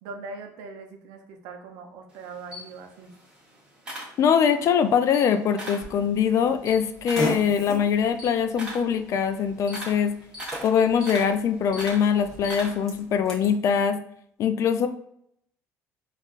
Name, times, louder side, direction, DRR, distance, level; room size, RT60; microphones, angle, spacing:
voice 1, 0.0-3.1, right 4 dB, 85° right, 4 dB, 0.5 m, -41 dB
Camera, 2.1-4.7 5.0-5.9 6.3-13.0, equal, 15° right, 1.3 m, -39 dB
voice 2, 4.2-10.1 10.6-14.0 14.4-14.9, left 7 dB, 55° left, 9 dB, 0.3 m, -22 dB
Fart, 5.8-13.5, equal, 10° left, 1.2 m, -38 dB
4.3 x 2.4 x 2.4 m, 0.70 s
cardioid pair, 100°, 6 cm